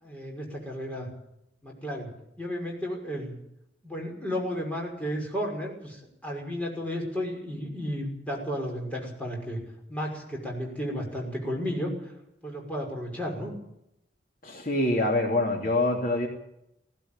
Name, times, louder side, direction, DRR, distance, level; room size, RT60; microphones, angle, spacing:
voice 1, 0.0-1.1 1.6-2.1 2.4-3.4 3.8-9.6 9.9-12.1 12.4-13.5, equal, 10° left, -1 dB, 5.9 m, -33 dB
voice 2, 14.4-16.3, left 2 dB, 50° left, 1 dB, 3.0 m, -25 dB
17.5 x 16.5 x 8.9 m, 0.82 s
head